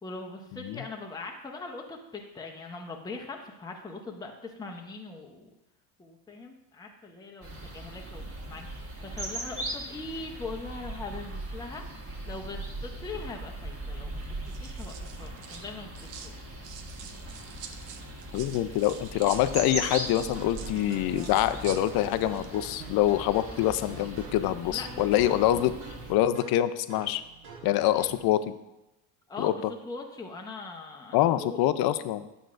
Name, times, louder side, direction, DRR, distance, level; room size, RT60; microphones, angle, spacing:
voice 1, 0.0-5.5 6.0-16.4 24.6-25.5 27.9-28.2 29.3-31.6, left 3 dB, 10° left, 2 dB, 0.8 m, -41 dB
sound 1, 7.4-26.1, right 1 dB, 30° right, 1.5 m, -40 dB
sound 2, 12.9-13.4 14.2-16.3 16.6-22.5 22.8-23.0, right 7 dB, 60° right, 0.8 m, -47 dB
voice 2, 18.3-25.7 26.1-27.2 27.6-28.5 29.4-29.7 31.1-32.2, left 13 dB, 50° left, 13 dB, 0.5 m, -25 dB
sound 3, 19.5-28.2, right 4 dB, 80° right, 1.5 m, -46 dB
9.1 x 6.1 x 2.5 m, 0.94 s
supercardioid pair, 85°, 48 cm